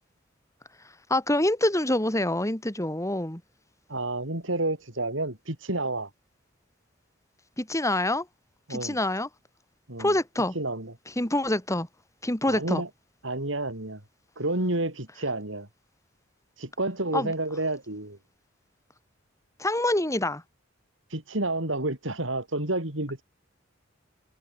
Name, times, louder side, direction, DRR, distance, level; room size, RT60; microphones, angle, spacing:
voice 1, 1.1-3.4 7.6-8.3 8.7-9.3 10.0-10.5 11.2-11.9 12.2-12.8 17.1-17.3 19.6-20.4, left 1 dB, 15° left, 4.5 m, -26 dB
voice 2, 3.9-6.1 8.7-9.0 9.9-10.1 10.5-10.9 12.5-12.9 13.2-14.0 14.4-15.7 16.6-18.2 21.1-23.2, right 2 dB, 70° right, 4.9 m, -30 dB
head